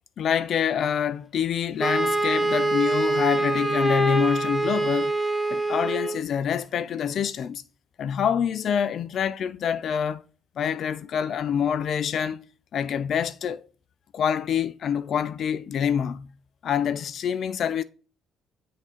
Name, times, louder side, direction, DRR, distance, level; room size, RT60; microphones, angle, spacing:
voice 1, 0.2-5.2 5.5-7.6 8.0-10.2 10.6-12.4 12.7-13.6 14.1-16.3 16.6-17.8, left 8 dB, 60° left, 0.4 m, -26 dB
Wind instrument woodwind instrument, 1.8-6.2, right 2 dB, 5° left, 0.9 m, -24 dB
9.5 x 3.7 x 4.2 m
cardioid pair, 90°, 0 cm